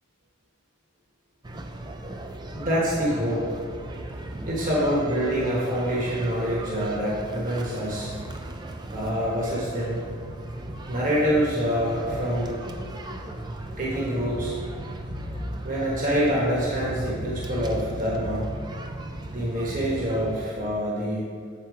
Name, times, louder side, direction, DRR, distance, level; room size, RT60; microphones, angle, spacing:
sound 1, 1.4-20.4, right 1 dB, 20° right, 0.4 m, -36 dB
voice 1, 2.5-3.5 4.5-8.1 8.9-10.0 10.9-12.6 13.8-14.6 15.6-18.5 19.3-21.3, equal, 40° right, -5 dB, 1.2 m, -26 dB
8.0 x 4.4 x 4.8 m, 2.2 s
head